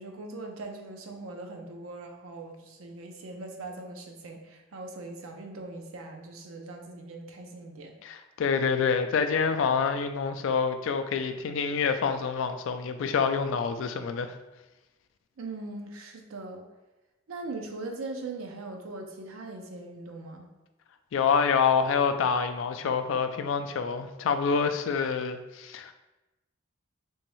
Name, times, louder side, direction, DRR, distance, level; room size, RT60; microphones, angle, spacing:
voice 1, 0.0-7.9 15.4-16.7 17.3-20.5, right 2 dB, 85° right, 3 dB, 0.5 m, -40 dB
voice 2, 8.0-14.4 21.1-25.9, left 6 dB, 65° left, 8 dB, 0.3 m, -27 dB
3.5 x 3.0 x 3.0 m, 1.1 s
head